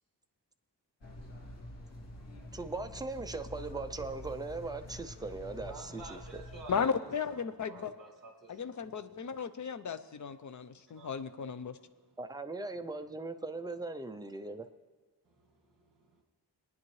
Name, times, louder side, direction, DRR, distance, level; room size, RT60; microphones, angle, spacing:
sound 1, 1.0-6.8, left 1 dB, 90° left, 2.3 m, -47 dB
voice 1, 2.5-6.2 12.2-14.7, right 3 dB, 10° right, 0.4 m, -39 dB
voice 2, 5.6-6.9 7.3-8.8 10.9-11.2 15.3-16.2, right 2 dB, 50° right, 2.1 m, -51 dB
voice 3, 6.7-7.9 8.5-11.8, left 6 dB, 45° left, 0.5 m, -35 dB
22.5 x 9.5 x 3.1 m
wide cardioid pair, 170°, 42 cm